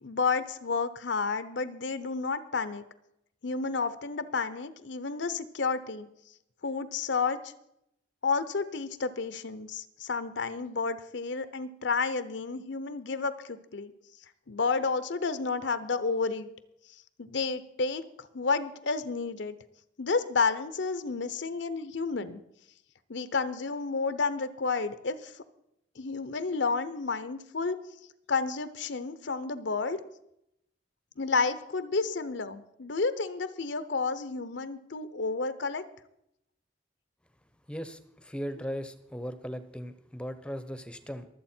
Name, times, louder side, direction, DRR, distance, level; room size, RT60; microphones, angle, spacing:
voice 1, 0.0-2.8 3.4-6.1 6.6-7.5 8.2-13.9 14.5-16.5 17.2-19.6 20.0-22.4 23.1-25.3 26.0-27.8 28.3-30.0 31.2-35.8, left 4 dB, 70° left, 13 dB, 0.8 m, -31 dB
voice 2, 37.7-41.3, equal, 5° left, 11 dB, 0.8 m, -38 dB
23.0 x 8.0 x 4.4 m, 0.80 s
head